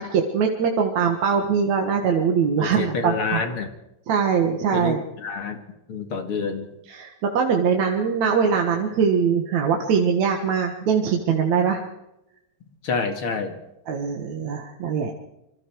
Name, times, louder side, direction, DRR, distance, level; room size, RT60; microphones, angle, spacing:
voice 1, 0.0-3.4 4.1-5.0 6.4-6.5 6.9-11.8 13.9-15.1, right 6 dB, 75° right, 2 dB, 2.9 m, -22 dB
voice 2, 2.6-3.7 4.7-5.6 5.9-6.7 12.8-13.6, left 4 dB, 50° left, 6 dB, 2.9 m, -28 dB
27.0 x 24.5 x 4.7 m, 0.90 s
omnidirectional pair, 3.3 m